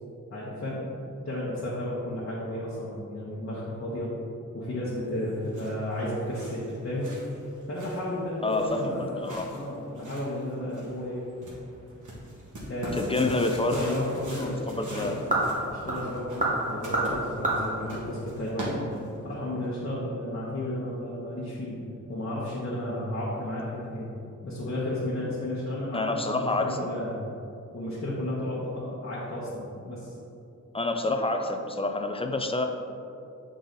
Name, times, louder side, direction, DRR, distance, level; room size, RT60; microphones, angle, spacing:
voice 1, 0.3-4.1 4.5-7.2 7.7-11.2 12.7-13.4 13.7-14.6 15.0-15.2 15.7-18.9 19.2-21.8 22.1-24.1 24.4-27.2 27.7-30.1, left 1 dB, 45° left, -8 dB, 1.0 m, -33 dB
sound 1, 5.1-19.3, right 1 dB, 75° right, 1.5 m, -42 dB
voice 2, 8.4-9.5 13.0-13.8 14.4-15.1 25.9-26.8 30.7-32.7, left 2 dB, 20° left, 4 dB, 0.4 m, -28 dB
sound 2, 13.2-19.0, right 2 dB, 25° right, 1.2 m, -31 dB
7.9 x 3.9 x 3.9 m, 2.7 s
wide cardioid pair, 160°, 31 cm